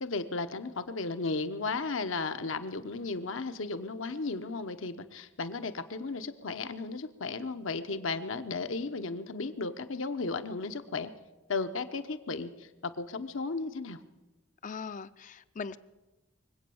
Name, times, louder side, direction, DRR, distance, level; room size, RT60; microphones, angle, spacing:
voice 1, 0.0-11.1 11.5-14.0, left 3 dB, 70° left, 0.9 m, -35 dB
voice 2, 14.6-15.8, left 5 dB, 40° left, 0.4 m, -40 dB
23.0 x 8.7 x 7.0 m
head